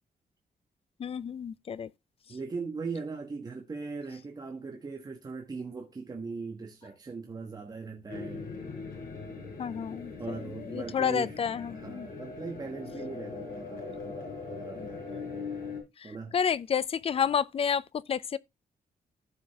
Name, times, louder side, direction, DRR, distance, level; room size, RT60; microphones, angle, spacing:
voice 1, 1.0-1.9 9.6-12.1 14.8-14.9 16.0-18.4, left 7 dB, 40° left, 0.4 m, -30 dB
voice 2, 2.3-8.5 10.2-11.3 11.7-15.5 16.0-16.3, right 4 dB, 25° right, 1.3 m, -39 dB
sound 1, 8.1-15.8, left 4 dB, 70° left, 5.4 m, -41 dB
14.5 x 5.0 x 3.5 m
wide cardioid pair, 180°, 15 cm